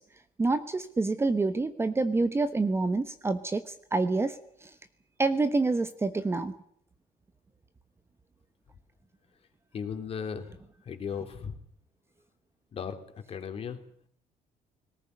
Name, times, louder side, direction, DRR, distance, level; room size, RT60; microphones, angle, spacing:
voice 1, 0.4-4.4 4.6-4.7 5.2-6.5, right 3 dB, 15° right, 10 dB, 1.1 m, -27 dB
voice 2, 9.7-10.6 10.8-11.6 12.7-13.0 13.3-13.8, left 7 dB, 35° left, 7 dB, 3.3 m, -36 dB
19.5 x 18.5 x 9.6 m, 0.64 s
cardioid pair, 145°, 16 cm